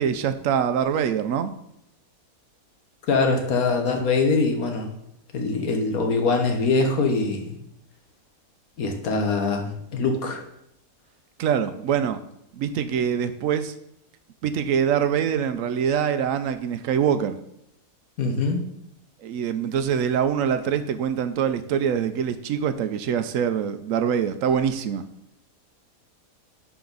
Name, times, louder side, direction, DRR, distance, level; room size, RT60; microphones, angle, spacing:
voice 1, 0.0-1.5 11.4-12.2 12.5-13.7 14.4-17.4 19.2-25.0, right 8 dB, 75° right, 10 dB, 0.9 m, -24 dB
voice 2, 3.1-4.9 5.3-7.5 8.8-10.4 18.2-18.7, left 3 dB, 85° left, 3 dB, 1.6 m, -23 dB
10.5 x 4.1 x 3.9 m, 0.78 s
omnidirectional pair, 1.5 m